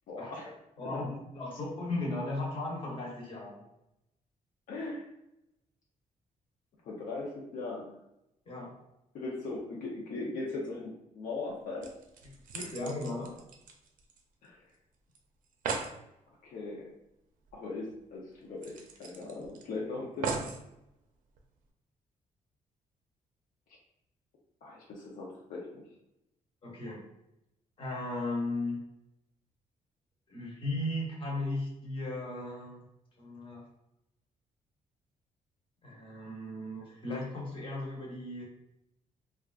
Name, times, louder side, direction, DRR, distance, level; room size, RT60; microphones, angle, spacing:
voice 1, 0.1-0.5 0.9-1.0 4.7-5.1 6.8-8.0 9.1-11.9 12.6-12.7 14.4-14.6 16.4-16.9 17.5-20.3 24.6-25.9, left 3 dB, 75° left, -4 dB, 0.6 m, -39 dB
voice 2, 0.8-3.6 8.5-8.7 12.5-13.3 26.6-27.0 27.8-28.8 30.3-32.8 33.2-33.6 35.8-38.5, left 2 dB, 40° left, -4 dB, 1.1 m, -36 dB
sound 1, 11.5-11.6 11.8-14.5 14.7-14.8 15.1-15.2 15.4-16.0 17.5-17.6 17.9-18.0 18.6-19.6 20.2-20.6 21.4-21.5, right 5 dB, 75° right, 0.5 m, -38 dB
3.4 x 2.4 x 2.3 m, 0.85 s
cardioid pair, 135°, 14 cm